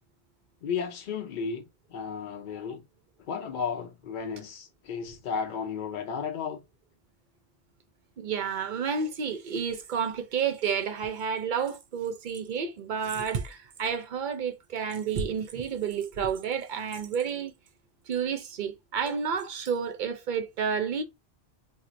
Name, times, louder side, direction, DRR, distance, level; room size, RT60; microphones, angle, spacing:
voice 1, 0.6-1.6 1.9-2.8 3.3-6.6, left 6 dB, 60° left, 0.6 m, -33 dB
voice 2, 8.2-17.5 18.1-21.0, right 6 dB, 60° right, 0.6 m, -30 dB
4.3 x 2.2 x 2.5 m
omnidirectional pair, 1.1 m